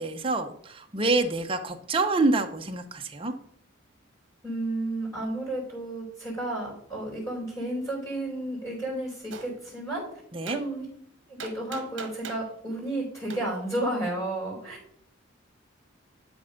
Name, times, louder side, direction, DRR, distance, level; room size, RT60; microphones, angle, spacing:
voice 1, 0.0-3.3 10.3-10.6, right 3 dB, 25° right, 6 dB, 0.7 m, -27 dB
voice 2, 4.4-10.2 10.5-10.8 11.3-14.8, right 1 dB, 15° left, -4 dB, 4.3 m, -32 dB
Gunshot gunfire, 9.3-9.5 10.5-10.6 11.4-12.5 13.3-13.4, right 4 dB, 65° right, 1.1 m, -39 dB
11.5 x 4.4 x 5.1 m, 0.64 s
head